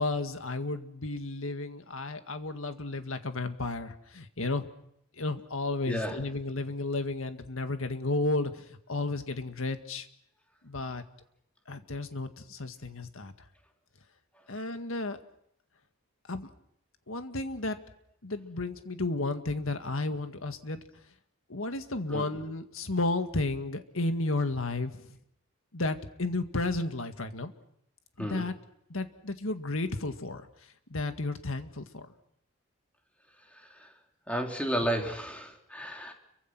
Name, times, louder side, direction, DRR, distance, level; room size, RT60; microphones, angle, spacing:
voice 1, 0.0-4.7 5.2-10.1 10.6-11.0 11.7-13.3 14.5-15.2 16.3-16.5 17.1-17.8 18.2-20.8 21.5-25.2 25.7-27.5 28.2-28.5 28.9-30.5 30.9-32.1, left 2 dB, 70° left, 8 dB, 1.9 m, -33 dB
voice 2, 5.9-6.2 22.1-22.3 28.2-28.4 33.5-33.9 34.3-36.1, equal, 5° left, 2 dB, 3.3 m, -33 dB
29.5 x 24.0 x 6.1 m, 0.73 s
head